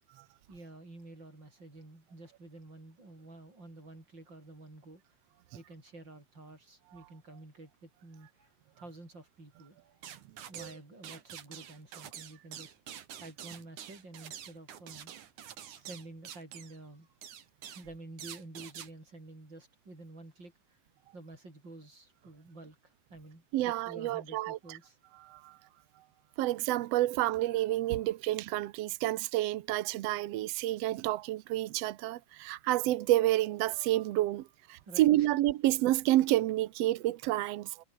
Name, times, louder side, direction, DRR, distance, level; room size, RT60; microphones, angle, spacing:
voice 1, 0.5-5.0 5.5-8.5 8.8-9.8 10.5-12.7 13.2-15.1 15.7-17.1 17.8-20.5 21.1-22.8 23.1-25.0 34.9-35.3, right 2 dB, 30° right, 8.6 m, -50 dB
sound 1, 10.0-10.8 11.0-16.8 17.2-17.9 18.2-18.9, right 9 dB, 65° right, 3.3 m, -46 dB
voice 2, 23.5-24.8 25.2-25.6 26.4-37.8, right 15 dB, 85° right, 1.4 m, -29 dB
omnidirectional pair, 3.9 m